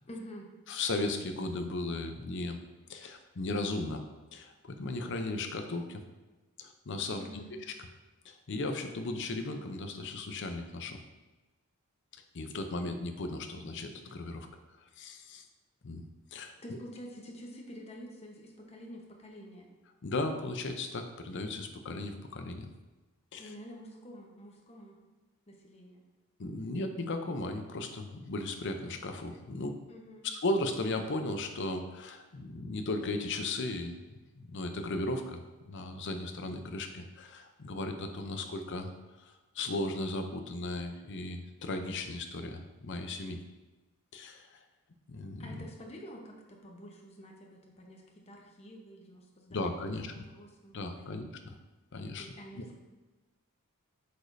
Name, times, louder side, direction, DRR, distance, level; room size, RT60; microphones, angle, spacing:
voice 1, 0.1-0.5 7.2-7.5 16.6-19.7 23.4-25.0 25.5-26.0 29.9-30.3 45.4-51.5 52.2-52.8, equal, 30° left, 0 dB, 1.0 m, -48 dB
voice 2, 0.7-2.6 2.9-4.0 4.3-6.0 6.6-7.4 7.7-7.8 8.2-11.0 12.3-14.5 15.0-15.4 15.8-16.0 16.3-16.5 20.0-22.7 23.3-23.5 26.4-29.8 30.2-34.0 34.4-38.9 39.2-43.4 44.1-44.6 45.1-45.7 49.5-50.2 50.7-51.6 51.9-52.3 52.5-52.6, left 2 dB, 55° left, 6 dB, 0.6 m, -36 dB
8.0 x 5.0 x 2.7 m, 1.2 s
head